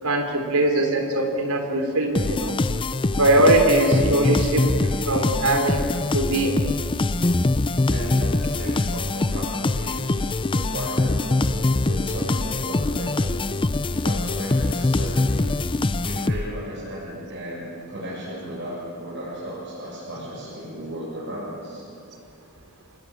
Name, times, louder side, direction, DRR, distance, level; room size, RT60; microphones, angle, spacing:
voice 1, 0.0-2.6 3.2-4.7 5.1-6.6, right 1 dB, 90° right, 5 dB, 3.9 m, -21 dB
sound 1, 2.1-16.7, left 2 dB, 20° left, 0.5 m, -23 dB
voice 2, 7.9-13.4 13.9-15.6 16.0-21.9, right 1 dB, 55° right, -8 dB, 7.6 m, -35 dB
28.0 x 19.5 x 8.9 m, 2.6 s
head